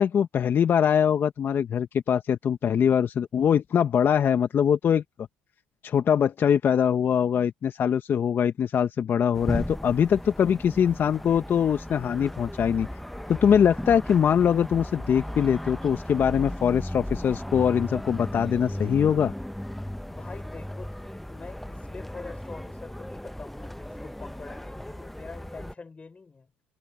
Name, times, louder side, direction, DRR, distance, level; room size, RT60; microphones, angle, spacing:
voice 1, 0.0-5.0 5.8-12.9 13.3-19.3, left 8 dB, 50° left, 1.1 m, -23 dB
sound 1, 9.3-25.7, equal, 5° left, 0.8 m, -36 dB
voice 2, 20.1-26.5, left 4 dB, 25° left, 5.3 m, -44 dB
supercardioid pair, 70°, 5 cm